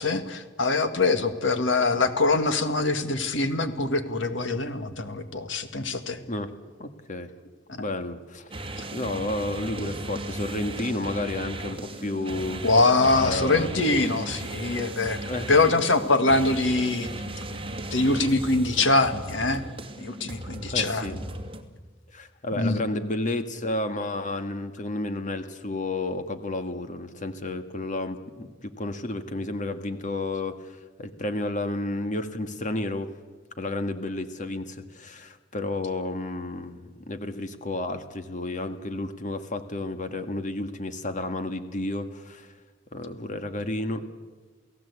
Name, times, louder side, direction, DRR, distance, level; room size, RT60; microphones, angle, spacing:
voice 1, 0.0-6.2 7.7-7.8 12.6-15.2 15.5-17.1 17.9-19.6 20.0-21.1 22.5-22.8, left 3 dB, 75° left, 9 dB, 2.0 m, -23 dB
voice 2, 6.8-7.3 7.8-12.7 13.2-13.7 15.3-15.5 20.7-21.2 22.1-33.1 33.6-42.5 42.9-44.0, left 2 dB, 40° left, 8 dB, 1.8 m, -31 dB
sound 1, 8.5-21.6, right 1 dB, 30° right, 2.4 m, -36 dB
29.0 x 17.0 x 8.3 m, 1.4 s
head